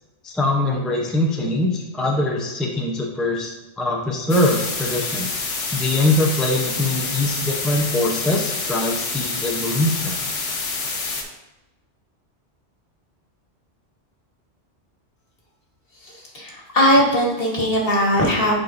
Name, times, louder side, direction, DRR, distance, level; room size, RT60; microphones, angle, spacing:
voice 1, 0.2-3.5 3.8-5.3 5.7-10.1, left 1 dB, ahead, -1 dB, 0.6 m, -22 dB
sound 1, 4.3-11.2, left 4 dB, 80° left, 1.3 m, -27 dB
voice 2, 16.0-18.5, equal, 55° left, -2 dB, 1.6 m, -19 dB
8.4 x 5.2 x 2.6 m, 1.0 s
omnidirectional pair, 1.2 m